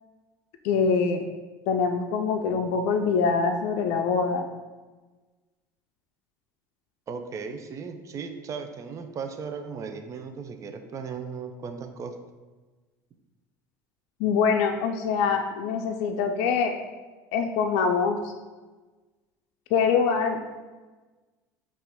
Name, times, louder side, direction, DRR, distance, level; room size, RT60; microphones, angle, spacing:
voice 1, 0.6-1.2 1.7-4.5 14.2-16.7 17.3-18.3 19.7-20.4, left 5 dB, 70° left, 4 dB, 0.4 m, -24 dB
voice 2, 7.1-12.2, right 5 dB, 35° right, 6 dB, 0.5 m, -36 dB
5.7 x 2.4 x 3.5 m, 1.3 s
supercardioid pair, 90°, 9 cm